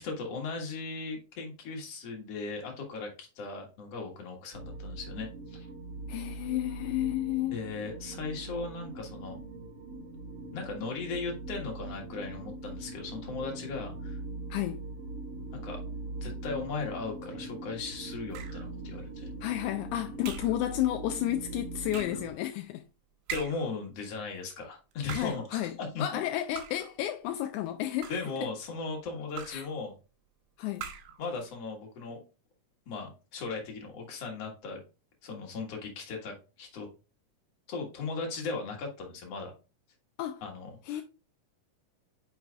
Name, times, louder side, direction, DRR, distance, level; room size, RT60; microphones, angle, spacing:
voice 1, 0.0-5.7 7.5-9.4 10.5-14.2 15.5-15.8 16.2-19.3 23.3-26.0 28.1-29.9 31.2-32.2 32.9-34.8 35.2-36.9 37.7-39.5 40.4-41.0, left 4 dB, 55° left, 2.5 m, -37 dB
sound 1, 4.5-22.3, right 2 dB, 60° right, 1.9 m, -41 dB
voice 2, 6.1-7.6 14.5-14.8 19.4-22.8 25.1-28.1 29.5-29.6 30.6-30.9 40.2-40.4 40.9-41.0, left 13 dB, 80° left, 1.8 m, -32 dB
sound 2, 18.3-18.7 20.2-20.6 21.9-22.3 23.3-23.8 24.9-25.5 26.6-27.0 27.8-28.4 29.4-29.8 30.8-31.2, right 8 dB, 75° right, 2.4 m, -41 dB
8.9 x 5.5 x 2.4 m
omnidirectional pair, 3.9 m